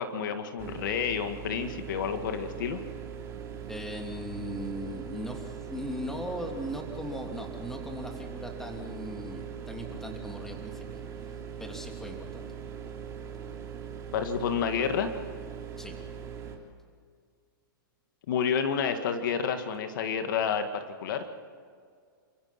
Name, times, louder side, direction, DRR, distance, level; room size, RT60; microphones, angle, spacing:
voice 1, 0.0-2.8 14.1-15.1 18.3-21.3, left 7 dB, 65° left, 7 dB, 2.0 m, -29 dB
sound 1, 0.6-16.6, right 8 dB, 25° right, 3.5 m, -41 dB
voice 2, 3.7-11.0 11.6-12.5 15.8-16.0, equal, 5° left, 2 dB, 3.0 m, -38 dB
29.0 x 16.0 x 6.0 m, 2.1 s
hypercardioid pair, 140°, 12 cm